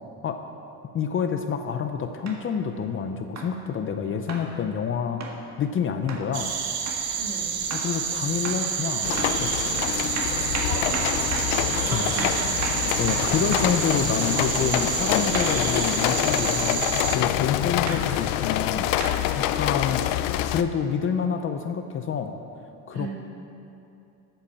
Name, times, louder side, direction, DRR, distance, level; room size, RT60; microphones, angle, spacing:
voice 1, 0.9-5.2 5.6-6.5 7.7-9.6 11.9-12.1 13.0-18.9 19.3-20.2 20.5-22.3 22.9-23.1, left 7 dB, 30° left, 7 dB, 0.6 m, -28 dB
sound 1, 2.3-2.4 3.4-3.6 4.3-4.5 5.2-5.4 6.1-6.3 6.9-7.0 7.7-7.9 8.4-8.7 9.2-9.4 9.8-13.8 15.3-15.6 16.4-16.6 17.9-18.1 19.0-19.2 20.1-20.2, right 3 dB, 40° right, 1.7 m, -34 dB
sound 2, 6.3-17.2, right 7 dB, 90° right, 1.6 m, -28 dB
voice 2, 7.2-7.5 10.7-11.3 11.9-12.5 22.9-23.1, right 4 dB, 65° right, 0 dB, 2.5 m, -35 dB
sound 3, 9.0-20.6, left 12 dB, 80° left, 0.7 m, -26 dB
13.0 x 8.0 x 7.2 m, 2.7 s
cardioid pair, 140°, 42 cm